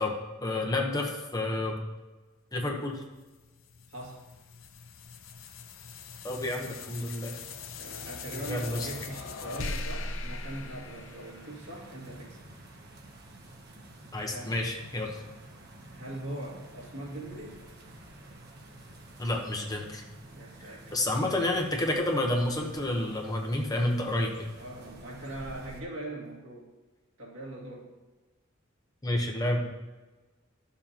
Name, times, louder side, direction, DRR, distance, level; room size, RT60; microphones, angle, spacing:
voice 1, 0.0-1.8 2.5-3.0 6.2-7.4 8.3-8.9 14.1-15.2 19.2-20.0 20.9-24.5 29.0-29.7, left 1 dB, 20° left, 1 dB, 1.0 m, -30 dB
sound 1, 3.2-11.8, left 3 dB, 80° left, 0.7 m, -40 dB
voice 2, 3.9-4.3 7.8-12.4 14.3-14.5 15.9-17.6 20.3-21.1 24.6-26.7 27.2-27.9, right 1 dB, 75° right, -3 dB, 2.2 m, -41 dB
sound 2, 8.9-25.8, right 1 dB, 55° right, 1.1 m, -50 dB
12.5 x 7.0 x 2.9 m, 1.2 s
head